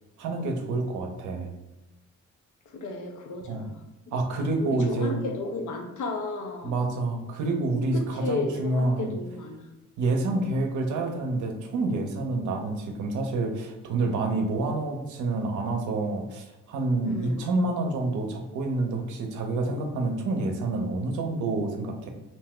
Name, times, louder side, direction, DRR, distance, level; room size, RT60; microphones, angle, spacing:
voice 1, 0.2-1.5 3.5-3.7 4.1-5.3 6.6-9.1 10.0-22.1, right 2 dB, 75° right, 3 dB, 0.6 m, -28 dB
voice 2, 2.7-6.8 7.9-9.7 17.0-17.5, left 3 dB, 75° left, 3 dB, 0.6 m, -34 dB
2.6 x 2.2 x 3.6 m, 0.98 s
cardioid pair, 75°, 30 cm